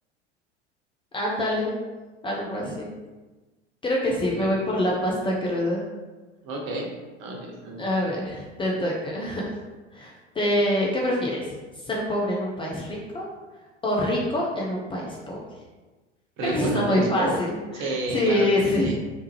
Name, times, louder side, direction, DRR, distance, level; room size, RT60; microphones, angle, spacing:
voice 1, 1.1-1.7 2.2-2.9 3.8-5.8 7.8-9.4 9.9-11.5 11.9-13.3 13.8-15.4 16.4-19.0, left 1 dB, 15° left, -3 dB, 0.5 m, -25 dB
voice 2, 4.2-4.5 6.4-6.9 7.2-7.9 16.4-17.4 17.7-19.0, right 2 dB, 35° right, 1 dB, 0.7 m, -31 dB
3.3 x 3.0 x 3.1 m, 1.2 s
figure-of-eight pair, 80°, 35 cm